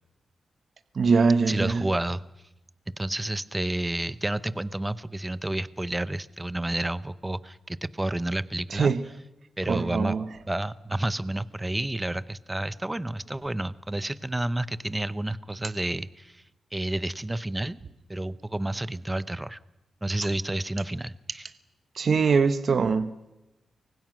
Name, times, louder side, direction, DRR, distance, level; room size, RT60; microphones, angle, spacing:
voice 1, 0.9-1.8 8.7-9.0 9.7-10.3 21.9-23.3, right 5 dB, 45° right, 1.1 m, -23 dB
voice 2, 1.5-2.2 3.0-8.9 9.6-10.2 10.5-16.4 16.7-17.8 18.1-19.6 20.0-21.5, right 1 dB, 10° right, 0.8 m, -30 dB
29.5 x 24.0 x 6.2 m
wide cardioid pair, 150°, 0 cm